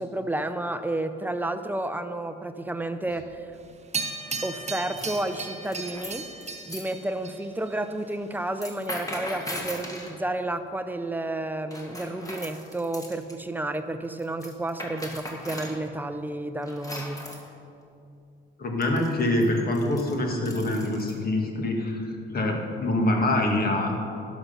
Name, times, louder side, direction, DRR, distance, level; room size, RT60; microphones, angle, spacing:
voice 1, 0.0-3.5 4.4-6.3 6.7-17.2, right 1 dB, 10° right, 9 dB, 0.6 m, -31 dB
sound 1, 3.1-3.5 4.8-6.9 8.5-10.2 11.7-13.3 14.2-15.8 16.6-17.5 18.8-21.2, left 1 dB, 15° left, 1.8 m, -39 dB
sound 2, 3.9-7.7 9.4-9.5, right 4 dB, 35° right, 0.8 m, -35 dB
voice 2, 18.6-23.9, left 1 dB, 50° left, 1 dB, 1.7 m, -25 dB
11.0 x 6.1 x 5.5 m, 2.5 s
cardioid pair, 90°, 20 cm